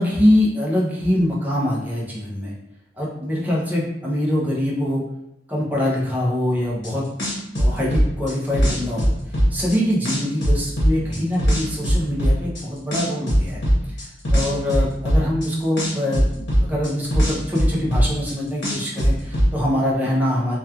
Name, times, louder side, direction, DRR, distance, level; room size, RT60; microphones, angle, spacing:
voice 1, 0.0-2.5 3.0-5.0 5.5-7.0 7.6-9.1 9.5-13.6 14.3-20.6, left 1 dB, 10° right, -5 dB, 0.6 m, -23 dB
sound 1, 6.8-6.9 7.2-9.8 10.0-12.6 12.9-15.5 15.8-18.3 18.6-19.5, equal, 70° left, 0.9 m, -19 dB
2.9 x 2.3 x 2.4 m, 0.80 s
head